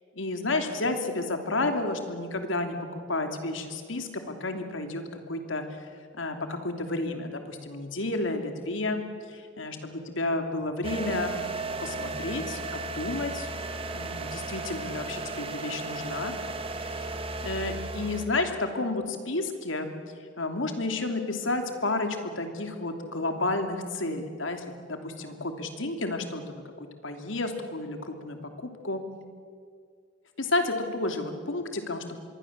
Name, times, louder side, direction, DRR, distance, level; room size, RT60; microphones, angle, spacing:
voice 1, 0.2-5.6 6.1-9.0 9.3-11.4 11.8-13.5 13.9-16.3 16.9-17.1 17.4-19.9 20.4-29.0 30.4-32.2, left 2 dB, 80° left, 6 dB, 2.9 m, -31 dB
sound 1, 10.8-18.3, right 3 dB, 30° right, 2.0 m, -35 dB
27.0 x 22.0 x 7.4 m, 2.1 s
head